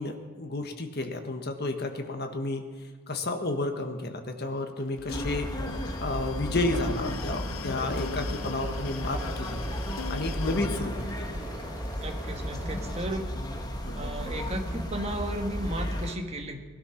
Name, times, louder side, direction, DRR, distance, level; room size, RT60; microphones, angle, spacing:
voice 1, 0.0-2.6 3.1-5.6 6.0-9.6 10.1-11.0 13.8-14.0, left 2 dB, 50° left, 5 dB, 1.6 m, -31 dB
sound 1, 4.8-10.8, left 5 dB, 70° left, 0.6 m, -39 dB
sound 2, 5.1-16.2, equal, 20° left, 1.4 m, -34 dB
sound 3, 7.9-13.0, right 2 dB, 10° right, 1.9 m, -44 dB
voice 2, 12.0-13.4 13.9-16.6, right 1 dB, 30° right, 4 dB, 1.5 m, -35 dB
19.5 x 12.5 x 5.9 m, 1.4 s
head